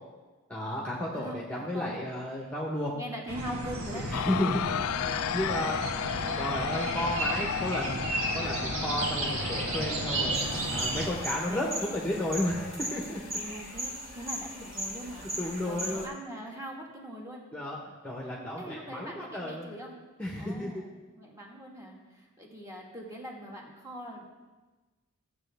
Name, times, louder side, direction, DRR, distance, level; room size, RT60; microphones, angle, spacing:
voice 1, 0.5-2.9 3.9-4.6 5.0-6.1 6.4-8.0 8.3-10.4 10.7-13.2 15.4-16.1 17.5-19.8 20.2-20.7, left 1 dB, 5° left, -3 dB, 1.1 m, -33 dB
voice 2, 1.1-2.1 2.9-4.1 11.5-11.8 13.4-15.3 15.6-17.4 18.6-20.0 20.4-24.3, equal, 15° right, -2 dB, 1.7 m, -42 dB
sound 1, 3.3-11.1, right 2 dB, 80° right, 1.5 m, -33 dB
sound 2, 4.1-16.1, left 10 dB, 90° left, 0.3 m, -36 dB
sound 3, 10.3-16.1, equal, 45° right, 2.7 m, -38 dB
15.0 x 7.7 x 3.4 m, 1.2 s
head